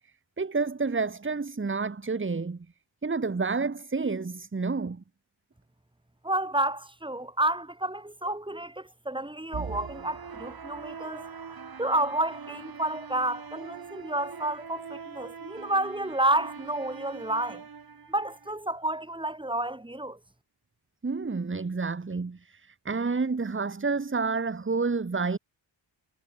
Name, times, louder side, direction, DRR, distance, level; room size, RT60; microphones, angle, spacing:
voice 1, 0.4-2.7 3.0-5.0 21.0-25.4, right 4 dB, 25° right, 2.1 m, -29 dB
voice 2, 6.2-11.2 11.8-17.6 18.1-20.2, right 1 dB, 10° right, 5.4 m, -30 dB
sound 1, 9.5-18.5, right 6 dB, 50° right, 5.5 m, -42 dB
cardioid pair, 100°, 47 cm